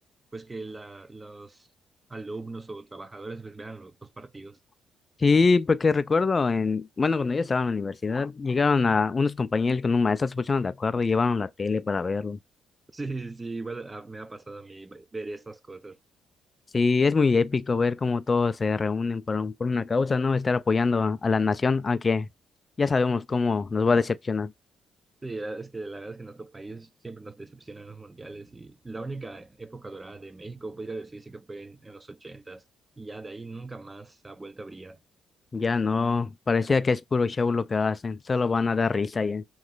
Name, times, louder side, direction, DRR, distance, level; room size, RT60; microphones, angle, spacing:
voice 1, 0.3-1.7 2.1-4.6 12.9-16.0 25.2-32.6 33.0-35.0, right 3 dB, 20° right, 0.6 m, -39 dB
voice 2, 5.2-12.4 16.7-22.3 22.8-24.5 35.5-39.4, left 4 dB, 30° left, 0.3 m, -24 dB
3.1 x 3.1 x 3.8 m
cardioid pair, 90°, 0 cm